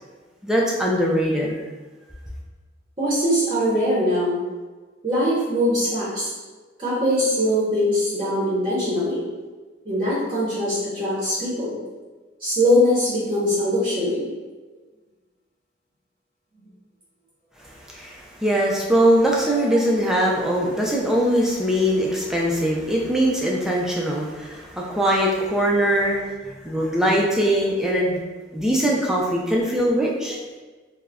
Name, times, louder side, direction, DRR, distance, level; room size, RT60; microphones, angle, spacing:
voice 1, 0.4-1.6 17.9-26.2 26.5-28.2 28.5-30.4, equal, 5° right, -3 dB, 0.4 m, -21 dB
voice 2, 3.0-4.4 5.0-6.3 6.8-9.2 9.8-11.8 12.4-14.3 26.0-26.2 28.0-28.1 30.3-30.4, equal, 30° right, -10 dB, 0.7 m, -22 dB
2.3 x 2.1 x 3.4 m, 1.3 s
head